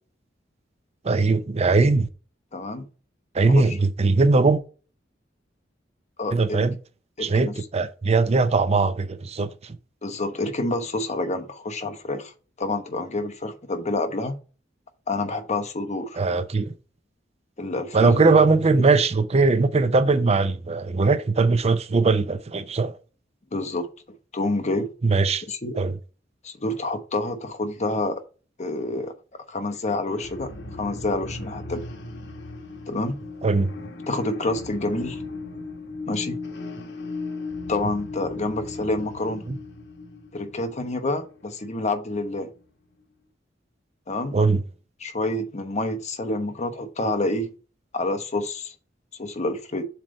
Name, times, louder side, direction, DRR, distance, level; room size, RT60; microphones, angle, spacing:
voice 1, 1.0-2.1 3.3-4.6 6.3-6.7 7.2-9.8 16.2-16.7 17.9-23.0 25.0-25.4 25.8-25.9 33.4-33.7 39.5-39.6 44.3-44.6, right 3 dB, 35° right, 0.5 m, -20 dB
voice 2, 2.5-2.8 3.4-3.8 6.2-6.4 7.2-7.5 10.0-14.4 15.1-16.2 17.6-18.2 18.8-18.9 23.5-23.9 24.3-24.9 25.5-25.8 26.4-28.2 28.6-29.1 29.5-31.8 32.9-33.2 34.1-35.2 36.0-36.4 37.7-39.4 40.3-42.5 44.1-44.4 45.0-47.5 47.9-48.7 49.2-49.8, left 2 dB, 40° left, 1.0 m, -28 dB
sound 1, 30.1-42.6, left 3 dB, 65° left, 1.4 m, -37 dB
7.4 x 3.3 x 5.1 m
head